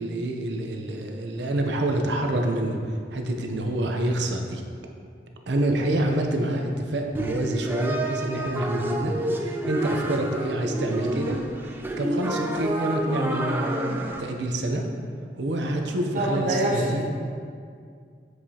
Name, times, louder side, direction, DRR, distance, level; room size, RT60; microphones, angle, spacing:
voice 1, 0.0-4.6 5.5-14.9 15.4-17.0, right 1 dB, 80° right, 3 dB, 0.6 m, -27 dB
sound 1, 7.1-14.2, right 1 dB, 10° right, 0.3 m, -29 dB
voice 2, 16.1-17.0, right 1 dB, 45° right, -5 dB, 0.7 m, -26 dB
7.8 x 4.8 x 2.8 m, 2.2 s
head